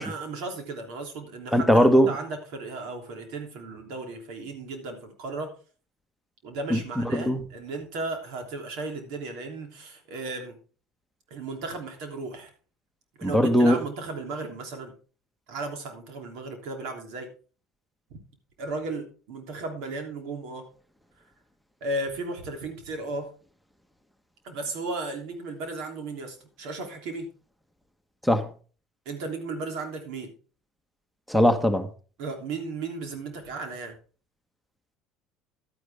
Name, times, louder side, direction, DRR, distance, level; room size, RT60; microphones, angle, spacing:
voice 1, 0.0-5.5 6.4-10.6 11.3-12.5 13.2-14.9 15.5-17.3 18.6-20.7 21.8-23.3 24.4-27.3 29.0-30.3 32.2-34.0, right 3 dB, 75° right, 3.1 m, -35 dB
voice 2, 1.5-2.1 6.7-7.4 13.2-13.8 28.2-28.5 31.3-31.9, equal, ahead, 1.3 m, -20 dB
12.0 x 9.5 x 3.5 m
supercardioid pair, 100°, 0 cm